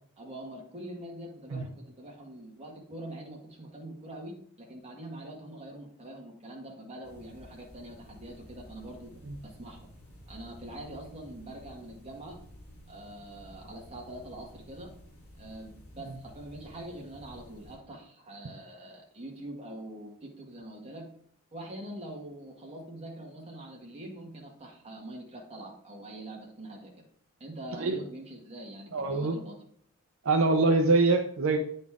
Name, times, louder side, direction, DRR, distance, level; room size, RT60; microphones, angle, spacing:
voice 1, 0.2-9.1 9.4-9.8 10.3-12.4 12.9-14.9 15.4-21.1 21.5-26.9 27.4-29.6, right 1 dB, 30° right, -1 dB, 1.8 m, -44 dB
sound 1, 7.0-17.8, equal, 50° left, 2.3 m, -52 dB
voice 2, 28.9-29.4 30.2-31.6, right 3 dB, 65° right, 3 dB, 0.6 m, -24 dB
9.1 x 4.2 x 3.6 m, 0.63 s
head